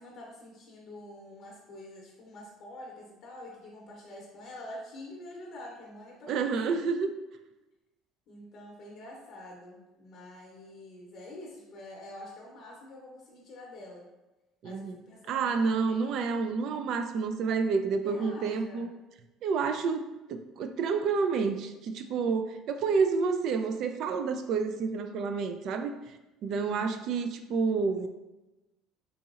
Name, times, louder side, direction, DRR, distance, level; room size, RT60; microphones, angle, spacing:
voice 1, 0.0-6.8 8.3-14.1 14.6-16.1 18.0-18.9 26.5-27.0, left 1 dB, 50° left, -2 dB, 0.7 m, -46 dB
voice 2, 6.3-7.1 14.6-15.0 15.3-18.9 19.4-26.2 26.4-28.1, right 5 dB, 60° right, 8 dB, 0.3 m, -29 dB
4.0 x 2.8 x 2.4 m, 1.0 s
cardioid pair, 115°, 0 cm